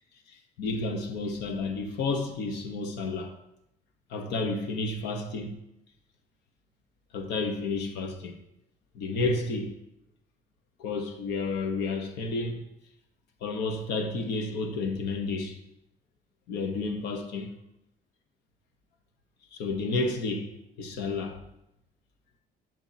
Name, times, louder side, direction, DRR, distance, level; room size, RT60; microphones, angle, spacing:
voice 1, 0.3-3.3 4.1-5.6 7.1-8.3 8.9-9.8 10.8-12.6 13.4-15.6 16.5-17.6 19.5-20.5 20.8-21.4, left 3 dB, 85° left, 1.0 m, -31 dB
7.1 x 6.3 x 2.8 m
cardioid pair, 110°, 17 cm